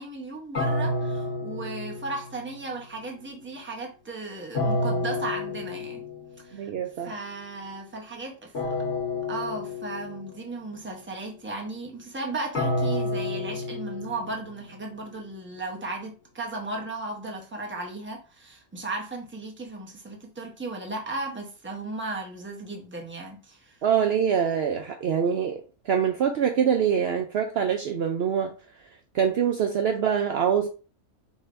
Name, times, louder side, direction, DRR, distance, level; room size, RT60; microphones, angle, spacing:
voice 1, 0.0-6.1 6.4-6.7 7.0-8.9 9.3-23.8, right 2 dB, 10° right, 0.8 m, -36 dB
sound 1, 0.5-2.6 4.5-6.4 8.5-10.4 12.5-14.7, left 2 dB, 70° left, 1.7 m, -30 dB
voice 2, 6.5-7.2 23.8-28.5 29.1-30.7, right 8 dB, 65° right, 0.7 m, -24 dB
5.2 x 3.3 x 2.5 m
omnidirectional pair, 1.3 m